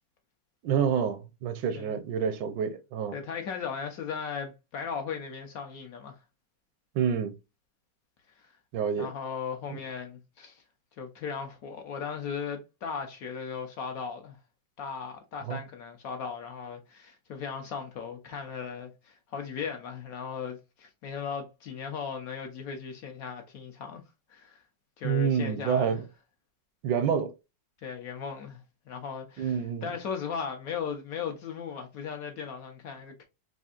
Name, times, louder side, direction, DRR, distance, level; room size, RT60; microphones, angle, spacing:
voice 1, 0.6-3.2 6.9-7.3 8.7-9.1 9.7-9.8 15.5-15.6 25.0-26.0 26.8-27.3 29.4-29.9, right 7 dB, 80° right, 1.3 m, -28 dB
voice 2, 3.1-6.2 8.4-8.5 9.0-10.6 11.0-14.4 14.8-24.0 24.3-24.6 25.0-26.0 27.8-33.2, left 6 dB, 65° left, 1.0 m, -37 dB
4.2 x 2.6 x 2.4 m
omnidirectional pair, 1.9 m